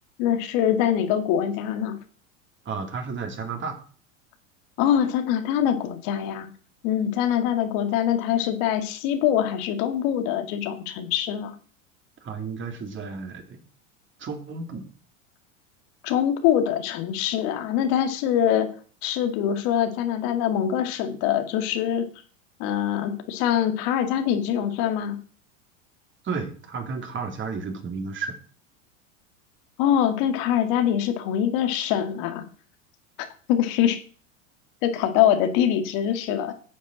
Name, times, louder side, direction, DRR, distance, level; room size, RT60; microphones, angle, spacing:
voice 1, 0.2-1.9 4.8-6.5 6.8-11.5 16.0-18.7 19.0-22.1 22.6-25.2 29.8-32.4 33.5-34.0 34.8-36.5, left 10 dB, 55° left, 7 dB, 2.2 m, -24 dB
voice 2, 2.6-3.8 12.2-13.6 14.2-14.8 26.2-28.3, right 5 dB, 30° right, 5 dB, 2.9 m, -32 dB
10.5 x 7.4 x 6.3 m, 0.42 s
hypercardioid pair, 105°, 40 cm